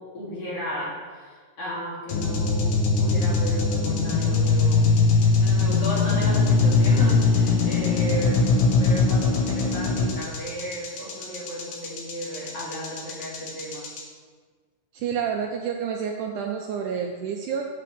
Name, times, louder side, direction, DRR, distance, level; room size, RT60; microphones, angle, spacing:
voice 1, 0.0-4.9 5.4-13.9, equal, 45° left, -7 dB, 3.1 m, -34 dB
sound 1, 2.1-14.0, left 4 dB, 70° left, 2.5 m, -21 dB
voice 2, 14.9-17.6, right 7 dB, 85° right, 2 dB, 1.8 m, -29 dB
7.6 x 4.8 x 6.8 m, 1.5 s
omnidirectional pair, 4.0 m